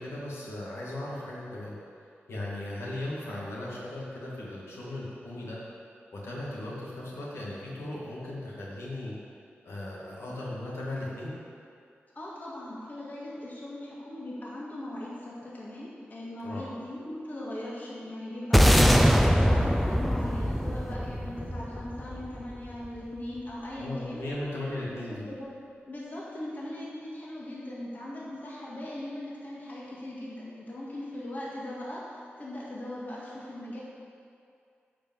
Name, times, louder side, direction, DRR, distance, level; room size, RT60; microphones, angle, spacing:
voice 1, 0.0-1.7 2.3-5.6 6.1-9.1 9.6-11.3 16.4-16.7 23.8-25.3, left 1 dB, 85° left, -5 dB, 2.1 m, -37 dB
voice 2, 12.1-24.2 25.1-25.5 25.9-33.8, left 1 dB, 45° left, -6 dB, 1.9 m, -39 dB
sound 1, 18.5-23.0, equal, ahead, 0.5 m, -23 dB
10.5 x 5.3 x 7.6 m, 2.4 s
wide cardioid pair, 80°, 4 cm